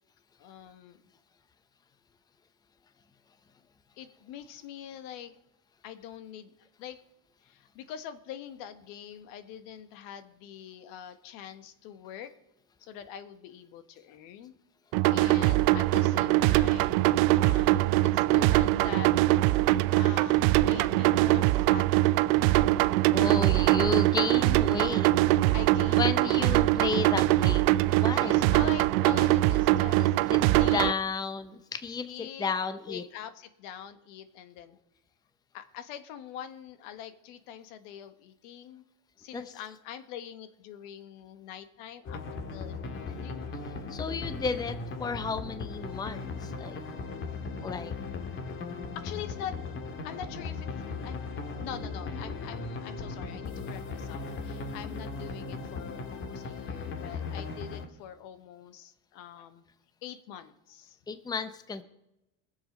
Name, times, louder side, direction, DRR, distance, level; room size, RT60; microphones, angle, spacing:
voice 1, 0.4-1.0 4.0-5.3 5.8-6.5 6.8-7.0 7.4-12.3 12.8-14.5 15.1-17.0 17.4-19.1 19.9-21.8 25.5-26.5 28.2-30.1 30.5-30.9 32.0-32.5 32.9-34.8 35.5-38.8 39.2-43.4 48.9-49.8 50.0-50.7 51.0-51.2 51.6-59.6 60.0-61.0, left 9 dB, 75° left, 10 dB, 1.4 m, -43 dB
sound 1, 14.9-30.9, right 17 dB, 75° right, 0.6 m, -23 dB
voice 2, 23.1-25.4 26.0-28.5 30.0-30.4 30.7-33.0 39.3-39.4 43.9-46.8 47.6-47.9 61.1-61.8, left 5 dB, 10° left, 11 dB, 0.7 m, -33 dB
sound 2, 42.0-57.9, left 4 dB, 35° left, 1.7 m, -37 dB
21.5 x 7.3 x 5.2 m, 0.90 s
cardioid pair, 130°, 35 cm